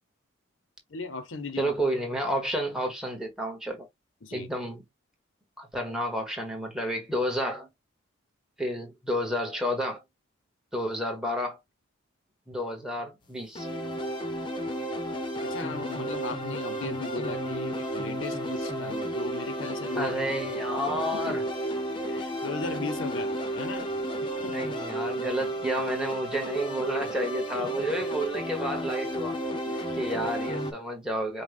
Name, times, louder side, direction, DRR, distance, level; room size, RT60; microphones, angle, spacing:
voice 1, 0.9-1.7 4.2-4.5 15.4-20.1 21.1-21.4 22.0-23.9 24.4-24.5 27.6-27.7 29.7-30.0 30.2-30.3, left 3 dB, 75° left, 0.8 m, -37 dB
voice 2, 1.6-3.9 4.3-4.8 5.6-7.7 8.6-10.0 10.7-11.6 12.5-13.7 19.9-21.4 24.4-29.4 30.0-31.4, equal, 5° right, 1.3 m, -30 dB
sound 1, 13.5-30.7, right 1 dB, 25° left, 0.8 m, -32 dB
5.2 x 2.2 x 3.4 m
head